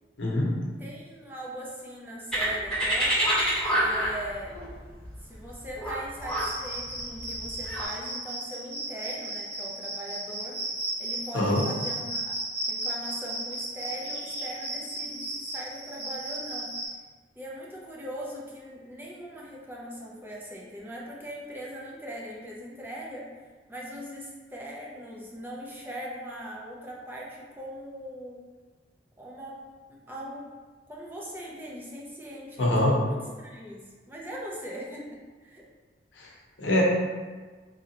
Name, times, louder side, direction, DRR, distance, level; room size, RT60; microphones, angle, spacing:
voice 1, 0.2-0.5 11.3-11.6 32.6-32.9 36.2-36.3 36.6-36.8, left 1 dB, 90° left, -3 dB, 0.8 m, -23 dB
voice 2, 0.8-3.2 3.7-4.6 5.2-10.7 11.0-12.4 12.7-16.8 17.4-23.3 23.7-28.4 29.2-29.6 29.9-30.5 30.9-35.7, equal, 10° right, -4 dB, 0.5 m, -40 dB
sound 1, 2.3-7.9, right 1 dB, 5° left, 1.5 m, -27 dB
Cricket, 6.2-16.8, right 1 dB, 60° right, 1.4 m, -35 dB
4.0 x 2.7 x 2.8 m, 1.4 s
head